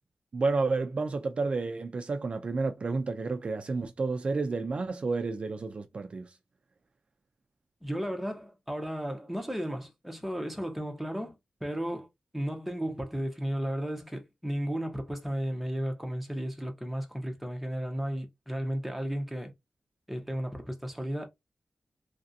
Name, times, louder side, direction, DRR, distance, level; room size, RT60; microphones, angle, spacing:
voice 1, 0.3-6.4, right 3 dB, 45° right, 0.3 m, -30 dB
voice 2, 7.8-12.1 12.3-19.5 20.1-21.3, equal, ahead, 0.7 m, -34 dB
3.2 x 2.5 x 2.6 m
wide cardioid pair, 145°, 3 cm